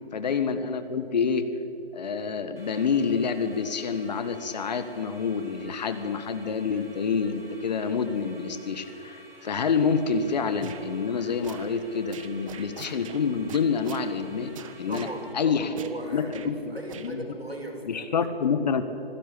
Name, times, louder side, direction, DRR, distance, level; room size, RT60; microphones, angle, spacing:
voice 1, 0.1-1.5 1.9-15.1 15.3-15.7 16.1-17.2 17.9-18.8, left 5 dB, 45° left, 10 dB, 1.6 m, -27 dB
sound 1, 2.6-15.3, right 1 dB, 70° right, 4.3 m, -51 dB
sound 2, 10.6-10.8 11.4-11.7 12.1-13.2 13.5-14.1 14.5-15.1 15.8-16.0 16.3-16.5 16.9-17.1, right 8 dB, 35° right, 1.5 m, -43 dB
voice 2, 14.9-18.3, equal, 90° right, 3 dB, 5.0 m, -38 dB
25.5 x 16.5 x 8.6 m, 2.9 s
figure-of-eight pair, 140°, 30 cm